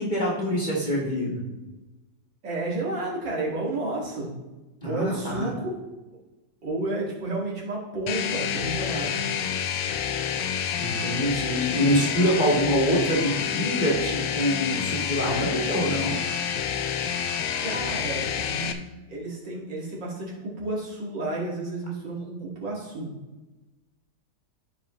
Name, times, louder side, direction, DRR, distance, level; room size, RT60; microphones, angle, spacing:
voice 1, 0.0-1.5 4.8-5.5 10.8-16.2, equal, 25° left, -4 dB, 1.8 m, -25 dB
voice 2, 2.4-4.3 4.8-5.8 6.6-9.2 17.6-23.1, right 2 dB, 85° right, -5 dB, 2.8 m, -31 dB
sound 1, 8.1-18.7, left 8 dB, 90° left, 1.3 m, -28 dB
13.5 x 4.9 x 3.1 m, 1.1 s
omnidirectional pair, 1.9 m